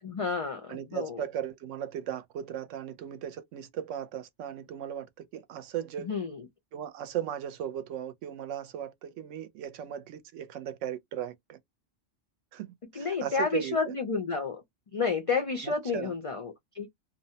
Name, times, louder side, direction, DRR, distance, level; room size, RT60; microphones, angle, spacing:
voice 1, 0.0-1.2 6.0-6.5 12.9-14.6 14.9-16.9, left 5 dB, 65° left, 0.3 m, -31 dB
voice 2, 0.7-6.2 6.7-11.6 12.5-13.9 15.6-16.1, right 10 dB, 85° right, 0.9 m, -37 dB
2.5 x 2.1 x 2.7 m
omnidirectional pair, 1.2 m